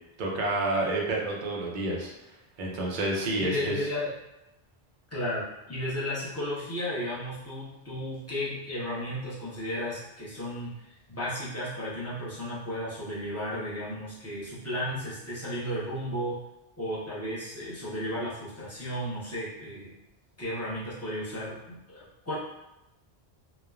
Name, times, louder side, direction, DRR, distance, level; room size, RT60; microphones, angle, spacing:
voice 1, 0.2-3.8, right 2 dB, 55° right, -2 dB, 0.7 m, -29 dB
voice 2, 3.4-4.1 5.1-16.4 16.8-19.9 20.4-22.4, equal, 15° left, -9 dB, 0.7 m, -34 dB
3.0 x 2.1 x 2.3 m, 0.91 s
omnidirectional pair, 1.1 m